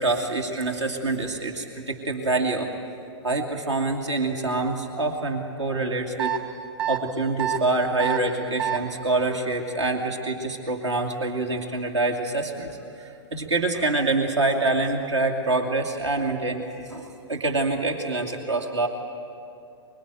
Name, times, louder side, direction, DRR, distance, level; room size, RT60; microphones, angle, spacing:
voice 1, 0.0-2.7 3.2-6.4 6.9-12.7 13.0-16.6 16.9-18.9, right 2 dB, 75° right, 1 dB, 2.7 m, -26 dB
sound 1, 6.2-6.4 6.8-7.0 7.4-7.6 8.0-8.2 8.6-8.8, right 12 dB, 40° right, 3.7 m, -25 dB
25.0 x 23.0 x 9.1 m, 2.6 s
figure-of-eight pair, 115°, 15 cm